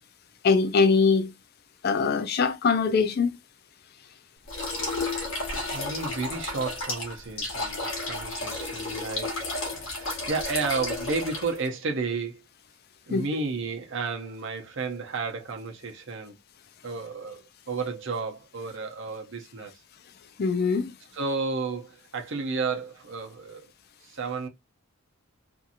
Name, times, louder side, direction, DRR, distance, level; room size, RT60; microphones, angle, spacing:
voice 1, 0.4-1.3 1.8-3.4 13.1-13.2 20.4-20.9, left 4 dB, 45° left, 0.4 m, -22 dB
sound 1, 4.5-11.7, left 2 dB, 65° left, 1.1 m, -32 dB
voice 2, 5.7-9.5 9.8-12.4 13.1-16.4 16.8-19.7 21.1-23.7 24.0-24.5, right 4 dB, 55° right, 0.7 m, -32 dB
2.7 x 2.6 x 2.5 m
head